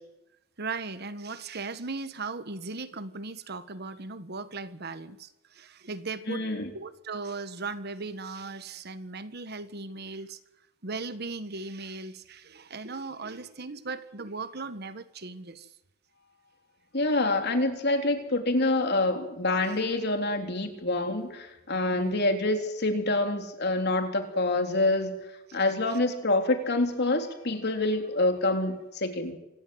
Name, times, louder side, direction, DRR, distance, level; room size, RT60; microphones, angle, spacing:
voice 1, 0.6-6.4 6.7-10.4 10.8-15.7 21.9-22.1 25.5-25.6, right 3 dB, 55° right, 12 dB, 1.4 m, -37 dB
voice 2, 6.3-6.7 16.9-25.2 25.5-29.3, left 2 dB, 55° left, 5 dB, 3.5 m, -26 dB
26.5 x 17.0 x 7.9 m, 0.96 s
head